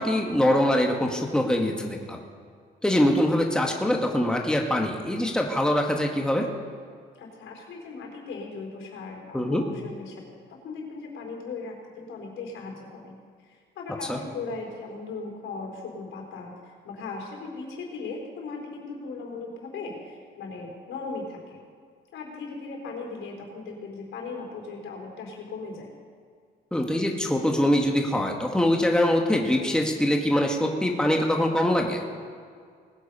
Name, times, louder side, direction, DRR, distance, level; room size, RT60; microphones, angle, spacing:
voice 1, 0.0-2.2 2.8-6.4 9.3-9.6 14.1-14.2 26.7-32.0, left 1 dB, 5° left, 1 dB, 1.6 m, -23 dB
voice 2, 7.2-10.3 10.6-13.1 13.4-21.6 22.1-25.9, left 4 dB, 80° left, 0 dB, 4.3 m, -38 dB
20.0 x 8.3 x 5.5 m, 2.1 s
cardioid pair, 90°, 20 cm